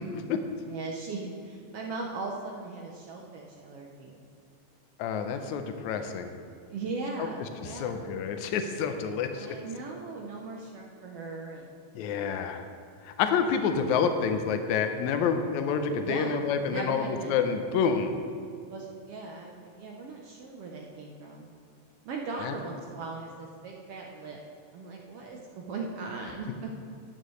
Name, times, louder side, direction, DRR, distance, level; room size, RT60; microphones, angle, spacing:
voice 1, 0.0-0.6 5.0-6.3 7.6-9.6 11.9-12.6 13.0-18.1 22.4-22.5, left 6 dB, 80° left, 7 dB, 2.0 m, -28 dB
voice 2, 0.6-4.2 6.6-8.0 9.3-11.7 16.0-16.3 16.6-17.3 18.7-21.5 22.0-24.4 24.7-26.7, right 3 dB, 70° right, 0 dB, 1.5 m, -38 dB
13.0 x 9.1 x 3.1 m, 2.3 s
omnidirectional pair, 3.3 m